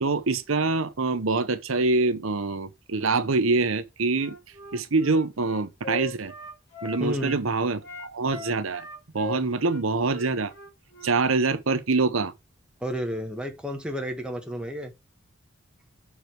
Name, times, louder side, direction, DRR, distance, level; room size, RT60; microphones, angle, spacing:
voice 1, 0.0-4.3 4.7-6.3 6.8-8.8 9.1-10.5 11.0-12.3, right 3 dB, 85° right, 0.9 m, -25 dB
Wind instrument woodwind instrument, 4.1-7.4 7.8-11.2, left 2 dB, 55° left, 3.9 m, -39 dB
voice 2, 7.0-7.4 12.8-14.9, equal, 5° right, 1.4 m, -31 dB
6.6 x 4.9 x 4.6 m
head